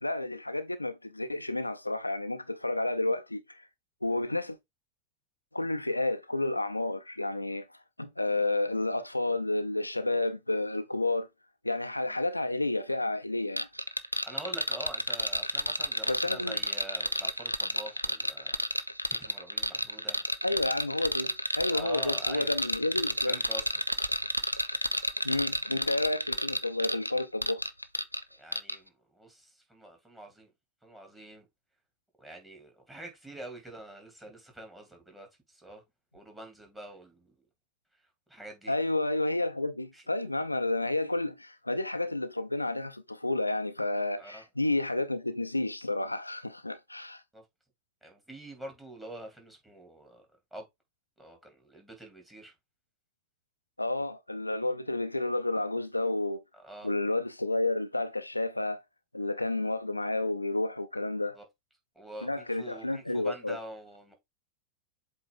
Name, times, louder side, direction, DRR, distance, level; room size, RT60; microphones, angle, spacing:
voice 1, 0.0-3.7 4.0-4.6 5.5-7.7 8.0-11.3 11.6-13.7 16.1-16.6 20.4-23.4 25.2-27.7 38.7-47.2 53.8-56.4 56.8-58.8 59.1-61.4 62.2-63.6, left 2 dB, 85° left, 0.5 m, -31 dB
sound 1, 13.6-28.2 28.5-28.8, equal, 90° right, 0.5 m, -31 dB
voice 2, 14.2-18.6 18.8-20.2 21.7-22.5 23.3-23.6 28.3-30.5 30.8-31.5 32.2-35.8 36.1-37.4 37.9-38.0 38.3-38.8 39.9-40.3 44.2-44.4 47.3-47.4 48.0-50.6 51.2-52.5 56.5-56.9 61.3-61.4 61.9-64.1, right 1 dB, 10° right, 2.7 m, -46 dB
7.8 x 3.3 x 3.8 m
figure-of-eight pair, 90°, 0 cm